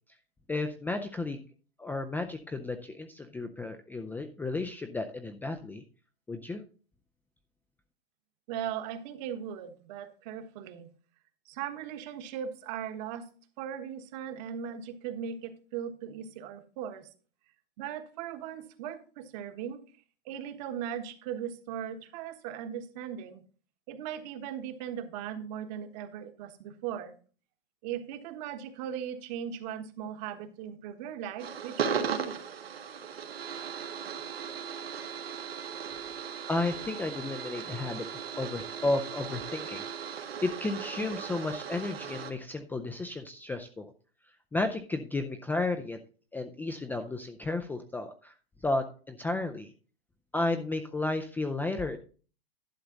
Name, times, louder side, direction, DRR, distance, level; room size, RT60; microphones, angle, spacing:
voice 1, 0.5-1.4 1.8-5.8 6.3-6.6 36.5-43.9 44.5-46.0 46.3-48.3 48.6-49.7 50.3-52.0, left 2 dB, 5° left, 7 dB, 0.5 m, -33 dB
voice 2, 8.5-10.9 11.5-13.3 13.6-17.1 17.8-19.8 20.2-23.4 23.9-27.1 27.8-32.4, right 9 dB, 45° right, 9 dB, 1.4 m, -38 dB
sound 1, 31.4-42.3, right 7 dB, 90° right, 1.7 m, -37 dB
11.5 x 6.7 x 3.9 m, 0.39 s
hypercardioid pair, 125°, 29 cm